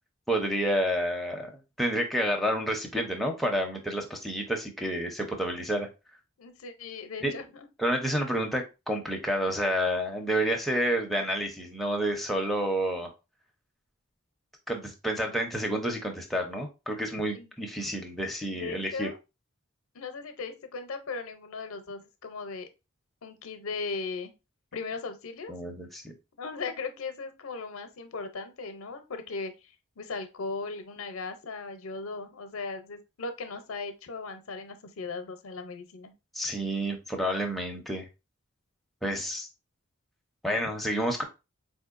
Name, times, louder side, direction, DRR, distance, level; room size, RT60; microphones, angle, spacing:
voice 1, 0.3-1.5 1.8-5.9 7.2-7.3 7.8-13.1 14.7-19.1 25.5-26.0 36.3-38.1 39.0-39.5 40.4-41.2, equal, ahead, 1 dB, 0.6 m, -29 dB
voice 2, 6.4-7.4 17.3-17.5 18.5-19.2 19.9-22.7 23.2-24.3 24.7-25.5 26.4-29.7 30.0-36.1, left 4 dB, 80° left, 8 dB, 0.6 m, -37 dB
4.2 x 2.7 x 2.4 m, 0.27 s
head